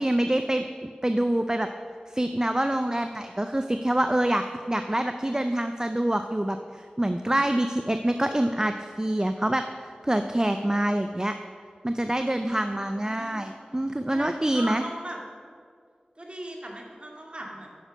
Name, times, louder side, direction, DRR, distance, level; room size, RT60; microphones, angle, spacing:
voice 1, 0.0-1.7 2.1-9.6 10.0-11.3 11.8-14.8, right 1 dB, 20° right, 7 dB, 0.5 m, -26 dB
voice 2, 12.5-13.4 14.1-15.2 16.2-17.7, right 1 dB, 35° right, -1 dB, 2.1 m, -39 dB
10.0 x 6.4 x 6.4 m, 2.1 s
wide cardioid pair, 40°, 3 cm